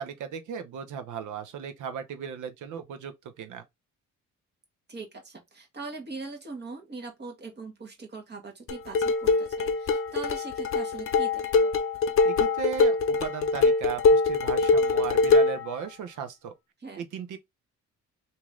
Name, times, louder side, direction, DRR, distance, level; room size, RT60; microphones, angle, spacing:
voice 1, 0.0-3.6 12.2-16.5 17.0-17.4, right 7 dB, 80° right, 0.8 m, -36 dB
voice 2, 4.9-11.7 16.8-17.0, right 3 dB, 35° right, 1.5 m, -41 dB
sound 1, 8.7-15.7, left 3 dB, 45° left, 0.7 m, -23 dB
3.0 x 2.8 x 3.6 m
cardioid pair, 90°, 30 cm